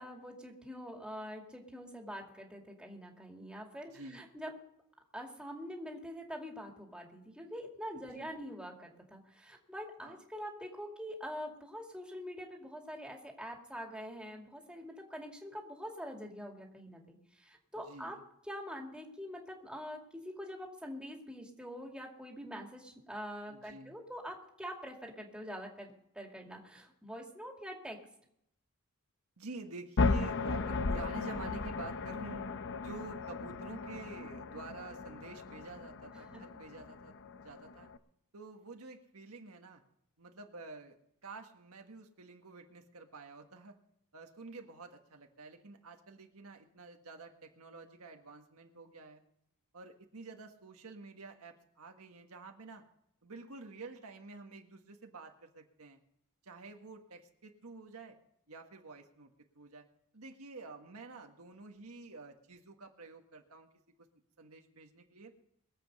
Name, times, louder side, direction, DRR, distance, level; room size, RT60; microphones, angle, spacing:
voice 1, 0.0-4.5 5.1-18.2 18.5-28.0 36.3-36.4, equal, 5° right, 0 dB, 2.3 m, -45 dB
voice 2, 3.9-4.2 7.9-8.3 10.0-10.2 17.7-18.2 23.5-24.0 29.4-32.5 32.8-37.9 38.3-39.8 40.2-40.9 41.2-43.8 44.1-49.2 49.7-52.8 53.2-56.0 56.4-58.1 58.5-59.8 60.1-63.7 64.4-65.3, right 3 dB, 75° right, 4 dB, 1.5 m, -49 dB
sound 1, 30.0-38.0, left 3 dB, 55° left, 0.7 m, -36 dB
22.5 x 7.9 x 5.3 m, 0.74 s
head